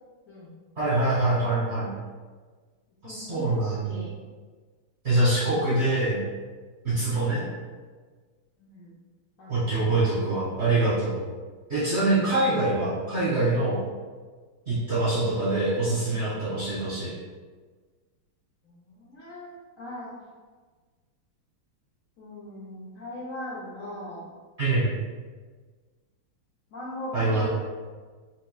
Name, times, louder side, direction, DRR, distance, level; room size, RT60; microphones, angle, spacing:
voice 1, 0.8-1.9 3.0-4.0 5.0-6.2 6.8-7.4 9.5-11.2 11.7-13.8 14.7-17.1 24.6-24.9 27.1-27.5, right 2 dB, 40° right, -8 dB, 1.1 m, -24 dB
voice 2, 3.0-4.1 8.6-8.9 9.4-10.1 18.6-20.1 22.2-24.3 26.7-27.5, left 1 dB, 65° left, -8 dB, 0.8 m, -40 dB
5.3 x 3.0 x 2.3 m, 1.4 s
omnidirectional pair, 2.4 m